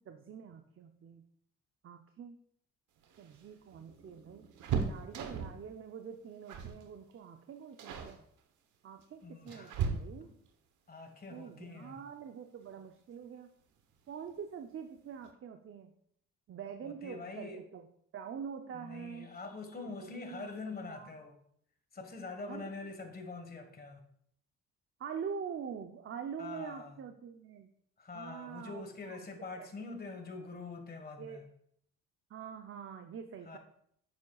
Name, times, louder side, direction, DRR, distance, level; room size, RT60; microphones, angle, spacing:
voice 1, 0.1-1.2 1.8-2.4 3.2-4.5 4.8-8.2 8.8-10.3 11.3-13.5 14.1-15.9 16.5-17.8 18.1-19.3 19.8-20.5 20.9-21.1 22.5-22.7 25.0-27.7 28.1-29.2 29.6-29.7 31.2-31.4 32.3-33.6, right 7 dB, 45° right, 6 dB, 0.6 m, -45 dB
sound 1, 3.0-5.7 6.5-6.8 7.1-7.4 7.8-8.2 9.0-10.5 12.2-12.3 12.7-12.8 14.0-14.4 14.7-14.8 15.1-15.3, right 6 dB, 80° right, 1.1 m, -37 dB
voice 2, 9.2-9.7 10.2-10.3 10.9-12.0 16.8-17.6 18.7-21.4 21.9-24.0 26.4-27.0 28.0-31.4 33.5-33.6, left 3 dB, 30° left, 6 dB, 1.5 m, -45 dB
9.5 x 7.3 x 2.4 m, 0.68 s
cardioid pair, 90°, 30 cm